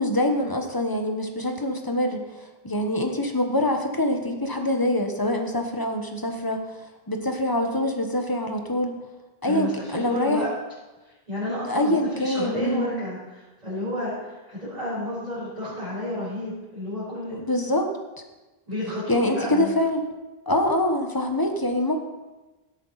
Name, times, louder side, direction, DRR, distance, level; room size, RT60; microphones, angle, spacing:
voice 1, 0.0-6.7 7.1-8.9 9.4-10.5 11.7-12.9 17.4-17.9 19.1-20.0 20.5-22.0, left 1 dB, 20° left, 4 dB, 1.1 m, -25 dB
voice 2, 9.4-10.5 11.3-17.4 18.7-19.7, left 1 dB, 40° right, -11 dB, 5.3 m, -31 dB
17.0 x 8.2 x 4.1 m, 1.1 s
omnidirectional pair, 1.1 m